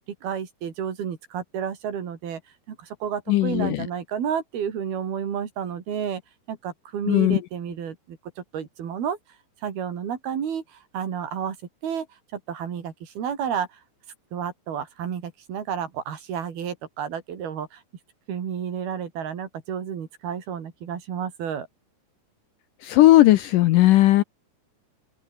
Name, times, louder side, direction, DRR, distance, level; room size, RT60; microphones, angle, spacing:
voice 1, 0.2-2.4 2.7-6.2 6.5-9.2 9.6-11.6 11.8-12.1 12.3-13.8 14.3-17.8 18.3-21.7, right 8 dB, 75° right, 4.9 m, -31 dB
voice 2, 3.3-3.9 7.1-7.4 22.8-24.2, left 16 dB, 75° left, 2.0 m, -17 dB
omnidirectional pair, 4.5 m